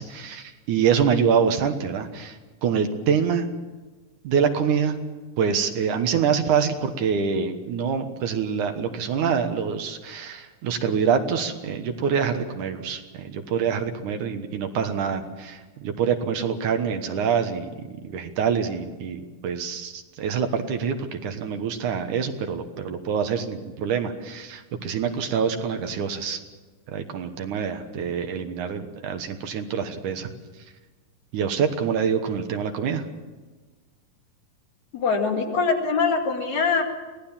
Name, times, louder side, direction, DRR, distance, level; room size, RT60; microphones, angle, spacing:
voice 1, 0.0-3.5 4.2-5.0 5.4-26.4 26.9-30.3 31.3-33.0, right 7 dB, 70° right, 6 dB, 2.7 m, -25 dB
voice 2, 34.9-36.8, left 5 dB, 60° left, 2 dB, 3.4 m, -23 dB
24.0 x 17.5 x 7.3 m, 1.3 s
omnidirectional pair, 3.8 m